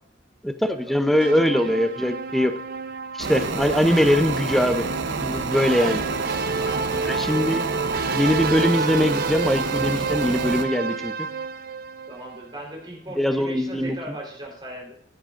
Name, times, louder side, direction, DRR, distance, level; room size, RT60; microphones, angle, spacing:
voice 1, 0.4-2.5 3.1-4.9 5.2-6.0 7.0-7.7 8.1-11.1 13.2-14.0, equal, ahead, 8 dB, 0.6 m, -22 dB
sound 1, 1.2-12.4, right 4 dB, 55° right, 0.6 m, -29 dB
sound 2, 3.2-10.6, right 3 dB, 85° right, 0.9 m, -30 dB
voice 2, 5.7-7.2 12.1-14.9, right 1 dB, 25° right, -2 dB, 3.8 m, -38 dB
15.5 x 8.0 x 2.5 m, 0.69 s
head